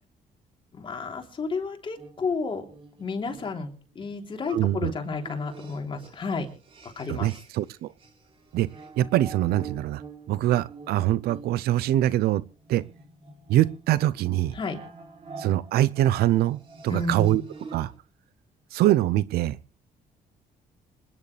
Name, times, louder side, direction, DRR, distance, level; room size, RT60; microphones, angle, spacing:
voice 1, 0.7-2.7 3.0-6.5 6.8-7.3 14.5-14.8 16.9-17.4, left 4 dB, 35° left, 3 dB, 3.5 m, -31 dB
sound 1, 2.0-7.7 8.0-18.0, right 4 dB, 35° right, 3.4 m, -47 dB
voice 2, 4.5-4.9 7.1-7.9 8.5-8.7 9.0-10.0 10.3-12.4 12.7-12.8 13.5-14.5 15.4-17.4 17.7-17.9 18.7-19.6, right 14 dB, 80° right, 18 dB, 0.6 m, -23 dB
27.0 x 11.0 x 3.4 m, 0.36 s
cardioid pair, 140°, 16 cm